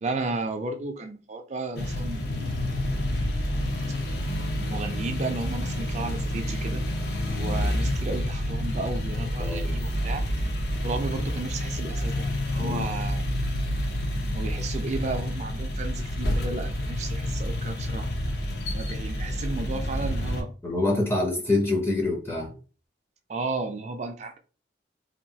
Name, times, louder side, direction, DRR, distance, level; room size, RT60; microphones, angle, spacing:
voice 1, 0.0-2.6 4.6-6.8 7.3-10.3 10.8-13.3 14.3-18.1 18.7-20.5 23.3-24.4, right 3 dB, 40° right, 0.4 m, -33 dB
sound 1, 1.7-20.4, left 1 dB, 60° left, 0.6 m, -29 dB
voice 2, 9.4-9.8 12.6-12.9 20.6-22.5, left 2 dB, 15° left, 0.5 m, -26 dB
2.8 x 2.3 x 2.7 m
head